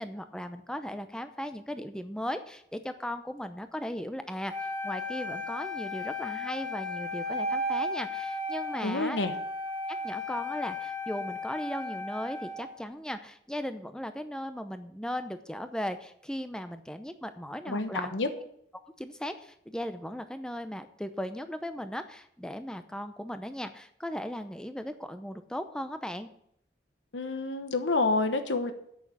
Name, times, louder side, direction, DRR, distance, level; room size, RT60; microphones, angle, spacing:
voice 1, 0.0-4.5 4.8-9.2 10.0-18.1 18.4-18.5 19.0-26.3, equal, 5° left, 9 dB, 0.6 m, -37 dB
Wind instrument woodwind instrument, 4.5-12.8, left 2 dB, 25° right, 2.1 m, -35 dB
voice 2, 8.8-9.3 17.7-18.3 27.1-28.7, left 3 dB, 85° left, 8 dB, 1.1 m, -28 dB
8.3 x 6.7 x 8.4 m, 0.72 s
head